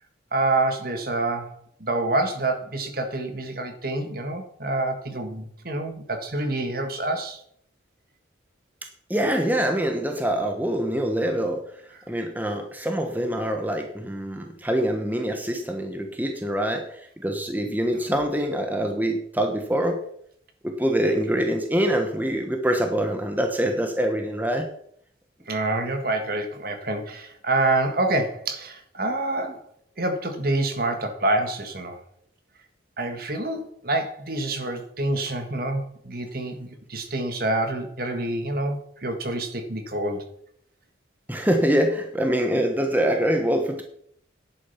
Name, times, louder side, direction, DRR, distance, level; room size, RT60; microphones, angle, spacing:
voice 1, 0.3-7.4 25.5-29.6 30.0-32.0 33.0-40.2, right 2 dB, 50° right, 6 dB, 1.7 m, -27 dB
voice 2, 9.1-11.6 12.1-20.0 20.6-24.7 41.3-43.8, right 1 dB, 10° right, 4 dB, 1.1 m, -24 dB
10.5 x 8.7 x 5.8 m, 0.67 s
head